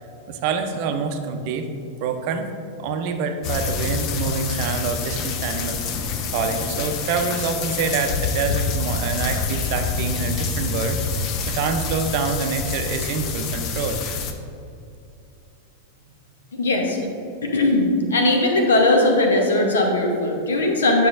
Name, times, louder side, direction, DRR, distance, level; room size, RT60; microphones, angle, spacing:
voice 1, 0.3-1.7 2.0-14.0, right 5 dB, 45° right, 6 dB, 0.6 m, -26 dB
sound 1, 3.4-14.3, left 5 dB, 40° left, 0.6 m, -27 dB
voice 2, 16.5-17.0 17.4-21.1, left 2 dB, 70° left, 2 dB, 1.0 m, -19 dB
9.3 x 5.9 x 2.5 m, 2.6 s
figure-of-eight pair, 90°, 0 cm